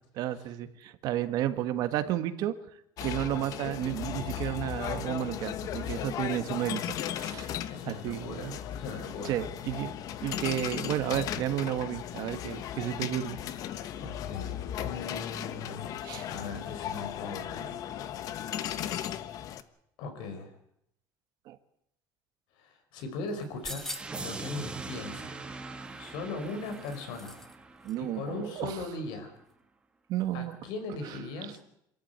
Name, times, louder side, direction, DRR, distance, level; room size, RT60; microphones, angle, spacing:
voice 1, 0.1-2.6 3.0-7.5 7.8-8.6 9.2-9.9 10.2-13.4 16.0-16.2 21.5-21.6 27.8-28.8 30.1-30.5, right 12 dB, 55° right, 11 dB, 1.6 m, -32 dB
sound 1, 3.0-19.6, left 10 dB, 50° left, 1.1 m, -36 dB
voice 2, 4.6-5.1 5.7-6.2 7.7-9.4 13.9-18.0 20.0-20.5 22.6-23.9 24.2-25.4 26.0-27.4 28.0-29.3 30.3-31.6, left 3 dB, 75° left, 7 dB, 5.2 m, -39 dB
sound 2, 23.4-24.3 25.8-27.6 27.8-27.9, left 1 dB, 5° left, 1.1 m, -43 dB
sound 3, 23.7-28.7, right 3 dB, 10° right, 1.6 m, -42 dB
27.0 x 13.5 x 9.4 m, 0.78 s
cardioid pair, 170°, 8 cm